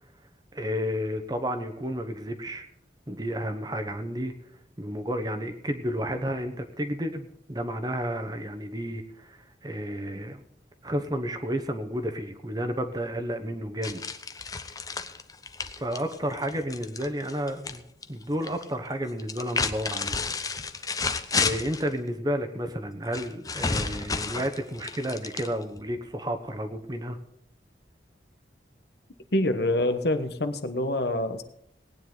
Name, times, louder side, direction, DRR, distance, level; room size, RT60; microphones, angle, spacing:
voice 1, 0.5-2.6 3.1-4.3 4.8-10.4 10.8-14.0 15.8-20.2 20.8-27.2, equal, 20° right, 7 dB, 1.1 m, -31 dB
sound 1, 13.8-17.8 18.0-18.6 19.2-21.9 23.1-25.8, left 4 dB, 20° left, 0.6 m, -31 dB
voice 2, 29.3-31.4, left 1 dB, 65° left, 9 dB, 1.2 m, -26 dB
19.0 x 9.5 x 4.0 m, 0.73 s
head